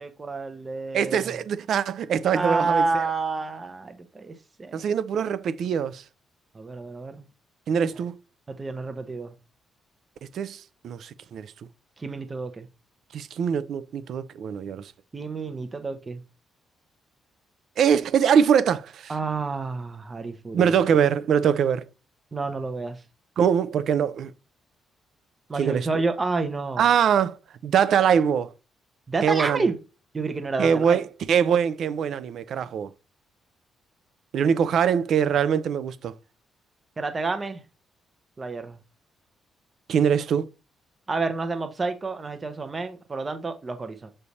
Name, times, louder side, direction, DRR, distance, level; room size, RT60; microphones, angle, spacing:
voice 1, 0.0-1.3 2.3-4.8 6.5-7.2 8.5-9.3 12.0-12.7 15.1-16.2 19.1-20.7 22.3-23.0 25.5-26.9 29.1-29.8 30.1-31.0 37.0-37.6 38.4-38.8 41.1-44.1, right 3 dB, 20° right, 0.7 m, -29 dB
voice 2, 0.9-2.8 4.7-6.0 7.7-8.1 10.3-11.5 13.1-14.8 17.8-19.1 20.5-21.8 23.4-24.3 25.6-25.9 26.8-27.4 27.6-28.5 29.2-29.7 30.6-32.9 34.3-36.1 39.9-40.5, right 7 dB, 60° right, 0.5 m, -23 dB
7.0 x 3.3 x 4.0 m
cardioid pair, 155°, 0 cm